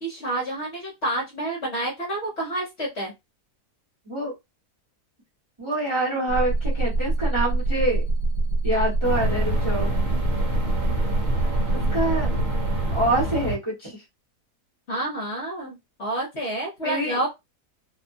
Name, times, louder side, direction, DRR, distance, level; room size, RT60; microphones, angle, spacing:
voice 1, 0.0-3.1 14.9-17.3, right 1 dB, 50° left, -2 dB, 1.0 m, -29 dB
voice 2, 5.6-8.0 8.6-9.9 11.9-12.3 12.9-14.0 16.8-17.2, right 1 dB, 20° right, -4 dB, 1.0 m, -26 dB
sound 1, 6.3-13.2, right 1 dB, 75° left, 1.0 m, -25 dB
sound 2, 9.0-13.5, right 1 dB, 55° right, 1.1 m, -28 dB
2.8 x 2.2 x 2.5 m, 0.21 s
omnidirectional pair, 1.7 m